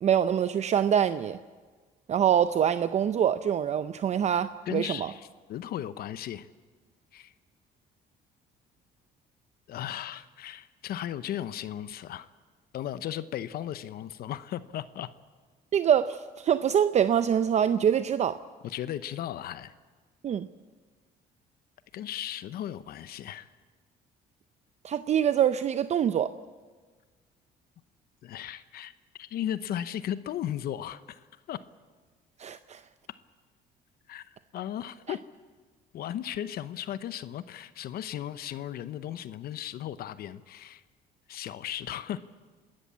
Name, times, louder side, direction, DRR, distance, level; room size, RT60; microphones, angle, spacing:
voice 1, 0.0-1.4 2.1-5.1 15.7-18.4 20.2-20.5 24.8-26.3 32.4-32.8, right 9 dB, 40° right, 0.6 m, -25 dB
voice 2, 4.7-6.5 7.1-7.3 9.7-12.3 12.7-15.1 18.6-19.7 21.9-23.5 28.2-31.6 34.1-35.2 35.9-40.8 41.3-42.2, left 11 dB, 65° left, 0.8 m, -36 dB
29.5 x 13.0 x 8.4 m
cardioid pair, 110°, 17 cm